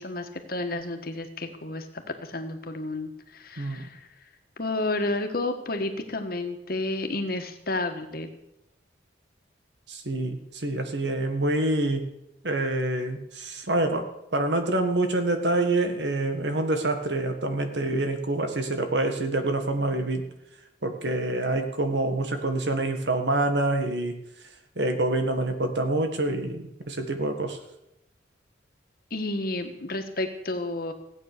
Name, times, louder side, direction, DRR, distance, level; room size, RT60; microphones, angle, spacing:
voice 1, 0.0-1.9 2.2-4.0 4.6-8.3 29.1-30.9, left 2 dB, 55° left, 6 dB, 1.6 m, -31 dB
voice 2, 3.6-3.9 9.9-12.1 12.4-14.1 14.3-20.3 20.8-24.2 24.8-27.6, right 2 dB, 70° right, 6 dB, 1.8 m, -26 dB
16.0 x 8.9 x 6.8 m, 0.83 s
head